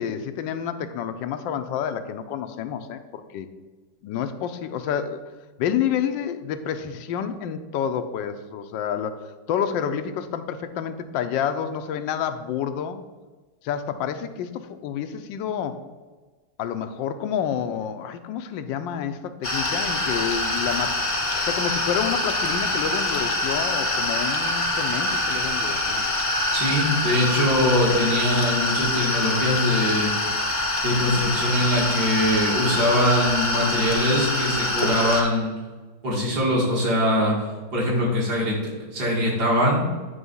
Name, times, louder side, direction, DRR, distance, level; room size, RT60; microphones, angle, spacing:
voice 1, 0.0-3.5 4.0-5.2 5.6-13.0 13.6-15.8 16.6-21.0 21.4-26.0, left 8 dB, 85° left, 9 dB, 1.3 m, -29 dB
sound 1, 19.4-35.2, left 2 dB, 35° left, 0.5 m, -25 dB
voice 2, 26.5-30.1 30.8-35.5 36.0-37.4 37.7-39.9, left 1 dB, 60° right, -4 dB, 2.5 m, -22 dB
9.4 x 3.4 x 5.4 m, 1.3 s
omnidirectional pair, 2.0 m